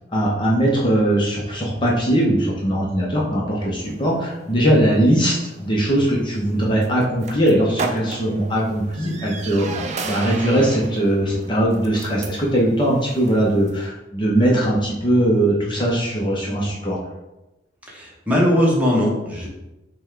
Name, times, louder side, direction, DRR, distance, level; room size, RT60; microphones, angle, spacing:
voice 1, 0.1-17.0, right 1 dB, 25° left, -3 dB, 0.7 m, -20 dB
sound 1, 3.8-13.9, right 4 dB, 40° right, 0.4 m, -35 dB
voice 2, 17.9-19.5, equal, 10° right, -4 dB, 1.0 m, -19 dB
5.9 x 2.2 x 3.7 m, 1.0 s
head